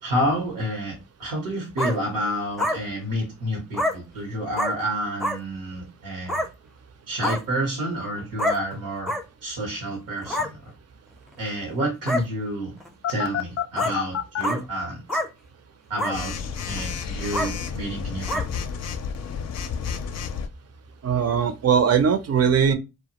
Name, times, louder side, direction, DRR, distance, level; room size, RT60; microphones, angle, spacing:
voice 1, 0.0-6.4 7.1-9.1 9.4-10.5 11.4-12.8 13.1-15.2 15.9-16.4 16.7-18.6, right 1 dB, 85° right, 0.9 m, -29 dB
sound 1, 1.8-1.9 2.6-2.8 3.7-3.9 4.5-4.7 5.2-5.4 6.3-6.5 7.2-7.4 8.4-8.6 9.1-9.2 10.2-10.5 11.3-11.4 12.1-12.2 12.8-12.9 13.8-13.9 14.4-14.6 15.1-15.3 16.0-16.1 16.7-16.8 17.3-17.5 18.3-18.4, left 1 dB, ahead, 0.5 m, -25 dB
Telephone, 13.0-14.4 16.1-20.5, left 7 dB, 55° left, 0.4 m, -30 dB
voice 2, 21.0-22.7, right 7 dB, 50° right, 0.5 m, -20 dB
2.2 x 2.1 x 2.8 m
supercardioid pair, 40°, 32 cm